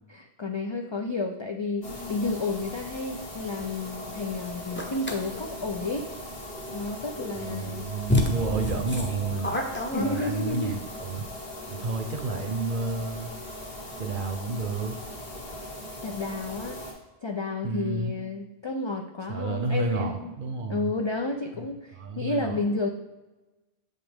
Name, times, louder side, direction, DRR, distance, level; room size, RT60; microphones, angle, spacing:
voice 1, 0.1-6.1 6.7-7.8 9.9-10.7 16.0-16.8 17.2-20.3 20.7-22.9, left 3 dB, 50° left, 3 dB, 0.3 m, -31 dB
sound 1, 1.8-16.9, left 1 dB, 70° left, 1.5 m, -39 dB
sound 2, 4.8-5.2 7.4-7.5 8.1-10.6, left 1 dB, 15° left, 0.6 m, -28 dB
voice 2, 7.3-9.6 10.0-11.3 11.7-13.3 14.0-15.0 17.6-18.2 19.3-20.9 21.6-21.7 21.9-22.6, right 3 dB, 60° right, 5 dB, 0.9 m, -31 dB
7.0 x 5.5 x 3.5 m, 1.1 s
omnidirectional pair, 1.0 m